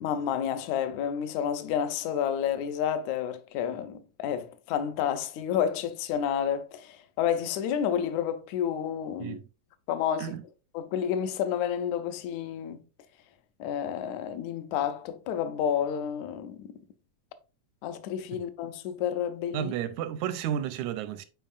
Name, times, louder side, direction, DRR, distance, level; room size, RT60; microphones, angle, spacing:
voice 1, 0.0-9.4 9.9-10.4 10.7-12.8 13.6-16.7 17.8-19.7, left 9 dB, 75° left, 1.9 m, -30 dB
voice 2, 19.5-21.3, right 10 dB, 80° right, 1.8 m, -32 dB
9.2 x 4.5 x 2.4 m
omnidirectional pair, 3.7 m